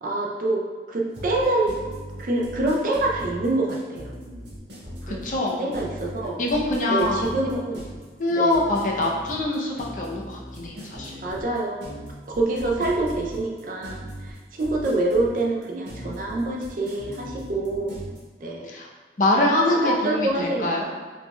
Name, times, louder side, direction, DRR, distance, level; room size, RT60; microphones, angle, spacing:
voice 1, 0.0-1.7 2.2-4.1 5.1-5.2 5.6-6.4 6.9-7.8 8.3-8.6 11.2-11.8 12.3-17.9 18.4-18.7 19.8-20.8, right 2 dB, 50° right, -1 dB, 0.4 m, -26 dB
sound 1, 1.1-18.2, equal, 75° right, 1.3 m, -39 dB
voice 2, 5.1-5.6 6.4-7.2 8.2-11.2 18.7-18.9 19.2-20.9, left 1 dB, 45° left, -2 dB, 0.6 m, -24 dB
4.3 x 3.4 x 2.2 m, 1.5 s
head